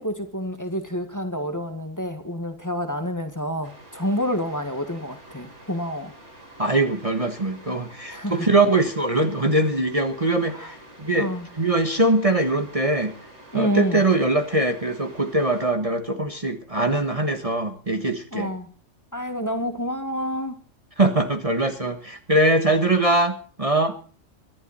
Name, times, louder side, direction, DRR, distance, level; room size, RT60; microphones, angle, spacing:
voice 1, 0.0-6.1 8.1-8.5 10.5-10.7 11.2-11.4 13.5-14.0 18.3-18.7 19.1-20.6 23.9-24.0, equal, 15° left, 6 dB, 1.9 m, -28 dB
sound 1, 3.6-15.7, right 1 dB, 65° right, 5.8 m, -47 dB
voice 2, 6.6-11.3 11.6-13.1 13.5-18.5 21.0-23.9, right 2 dB, 30° right, 6 dB, 1.4 m, -22 dB
24.0 x 12.0 x 4.2 m, 0.41 s
omnidirectional pair, 1.3 m